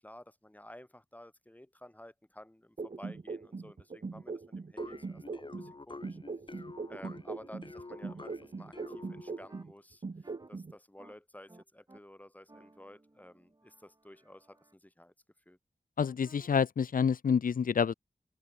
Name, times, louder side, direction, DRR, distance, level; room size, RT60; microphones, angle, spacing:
voice 1, 0.0-6.2 6.9-15.1 15.5-15.6, left 1 dB, 10° left, 7.4 m, -53 dB
sound 1, 2.8-5.7 6.0-9.7 10.0-10.7, right 4 dB, 55° right, 3.8 m, -40 dB
sound 2, 4.8-9.6, left 3 dB, 35° left, 2.3 m, -48 dB
sound 3, 8.7-8.9 9.5-9.6 10.2-10.5 11.0-11.1 11.5-12.0 12.5-14.7 16.0-16.5, right 2 dB, 25° right, 5.4 m, -59 dB
voice 2, 16.0-17.9, left 6 dB, 85° left, 1.0 m, -28 dB
wide cardioid pair, 70°, 14 cm